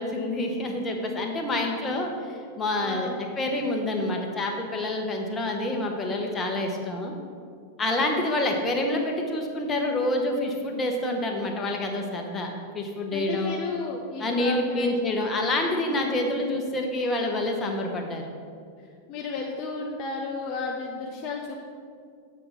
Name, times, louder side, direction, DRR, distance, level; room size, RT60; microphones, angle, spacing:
voice 1, 0.0-3.1 3.4-7.1 7.8-12.5 12.7-13.5 14.2-18.3, left 1 dB, 20° left, 2 dB, 1.0 m, -27 dB
voice 2, 2.8-3.2 13.1-15.0 15.8-16.1 19.1-21.6, left 4 dB, 40° left, 0 dB, 0.6 m, -33 dB
8.1 x 4.3 x 5.6 m, 2.2 s
figure-of-eight pair, 90°, 0 cm